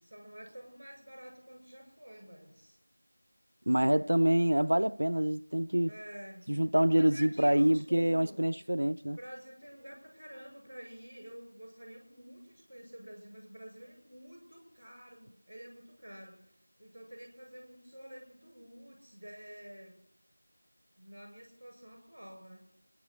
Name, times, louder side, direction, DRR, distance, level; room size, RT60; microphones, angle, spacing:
voice 1, 0.1-2.8 5.9-6.5 6.9-8.5 9.1-16.3 16.8-19.9 21.0-22.6, equal, 5° left, 6.3 m, -49 dB
voice 2, 3.7-5.9 6.5-9.2, right 1 dB, 80° right, 0.5 m, -26 dB
25.0 x 11.0 x 4.7 m
figure-of-eight pair, 180°, 0 cm